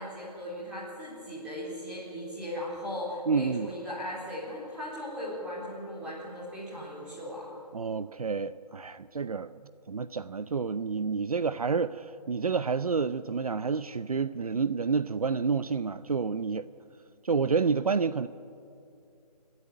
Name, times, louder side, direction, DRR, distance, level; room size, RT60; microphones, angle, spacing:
voice 1, 0.0-7.5, equal, 5° right, 3.8 m, -38 dB
voice 2, 3.3-3.7 7.7-9.5 9.9-16.7 17.2-18.3, right 5 dB, 60° right, 0.6 m, -29 dB
28.5 x 12.5 x 9.5 m
hypercardioid pair, 175°, 21 cm